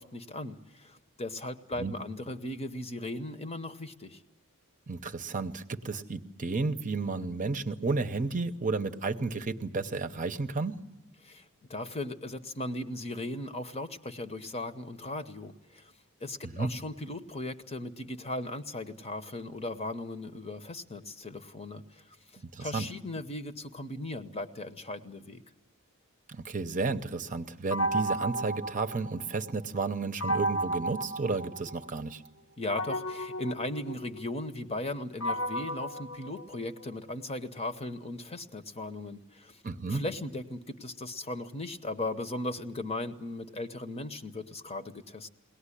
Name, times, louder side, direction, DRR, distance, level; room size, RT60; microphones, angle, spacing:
voice 1, 0.0-4.2 11.2-15.9 16.2-22.2 22.6-25.4 32.6-39.6 39.9-45.3, left 2 dB, 30° left, 9 dB, 0.9 m, -37 dB
voice 2, 4.9-10.8 16.4-16.7 22.5-22.9 26.3-32.2 39.6-40.0, right 3 dB, 35° right, 8 dB, 0.8 m, -32 dB
sound 1, 27.7-29.5 30.2-32.0 32.7-37.0, right 1 dB, 80° left, 1.0 m, -34 dB
22.5 x 18.0 x 9.9 m, 1.1 s
head